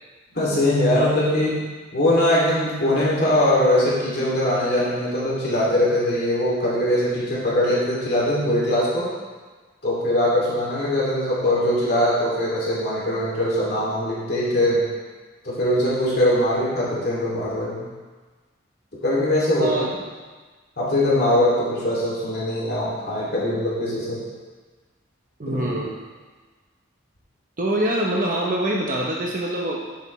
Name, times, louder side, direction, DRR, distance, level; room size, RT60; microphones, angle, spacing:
voice 1, 0.3-1.6 1.9-9.1 9.8-14.8 15.4-17.8 19.0-19.8 20.8-24.2 25.5-25.6, left 1 dB, 55° left, -7 dB, 2.5 m, -21 dB
voice 2, 19.6-19.9 25.4-26.0 27.6-29.9, right 1 dB, 45° right, -2 dB, 0.8 m, -24 dB
10.0 x 7.2 x 3.1 m, 1.4 s
head